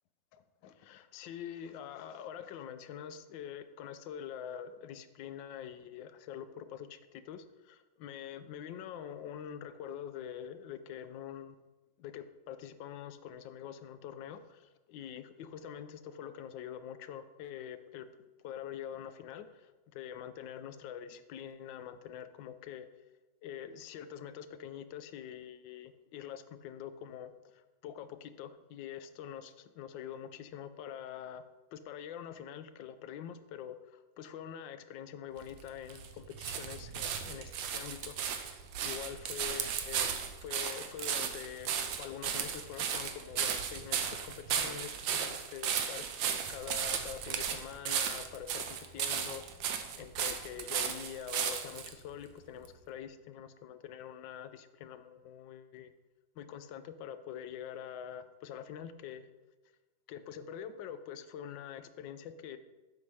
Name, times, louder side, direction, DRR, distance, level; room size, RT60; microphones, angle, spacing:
voice 1, 0.3-11.6 12.0-18.1 18.4-22.9 23.4-31.4 31.7-40.1 40.4-41.7 42.0-55.9 56.4-59.3 60.1-62.6, left 9 dB, 80° left, 11 dB, 1.3 m, -45 dB
sound 1, 35.4-51.9 52.6-52.7, right 8 dB, 90° right, 1.4 m, -35 dB
7.4 x 5.5 x 4.7 m, 1.2 s
omnidirectional pair, 2.0 m